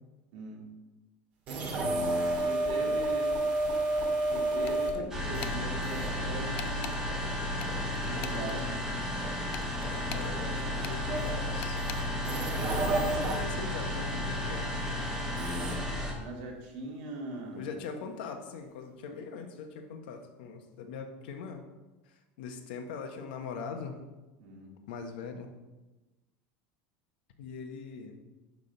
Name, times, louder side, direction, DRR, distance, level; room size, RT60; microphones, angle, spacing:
voice 1, 0.3-0.6 2.4-3.3 4.3-7.0 8.0-8.9 16.2-17.7 24.4-24.7, right 2 dB, 65° right, -1 dB, 2.2 m, -41 dB
sound 1, 1.5-5.0 5.3-6.3 7.0-10.6 11.0-13.3 15.4-15.7, right 2 dB, 35° right, 2.2 m, -32 dB
sound 2, 4.7-5.0 5.4-5.6 6.6-7.0 7.6-8.6 9.5-10.3 10.8-11.0 11.6-12.0, left 13 dB, 55° left, 0.4 m, -42 dB
sound 3, 5.1-16.1, left 1 dB, 10° right, 1.4 m, -33 dB
voice 2, 9.9-11.8 12.9-14.7 17.6-21.6 22.0-24.0 24.9-25.5 27.4-28.2, left 5 dB, 85° left, 5 dB, 1.2 m, -41 dB
10.5 x 3.6 x 5.4 m, 1.1 s
cardioid pair, 165°, 5 cm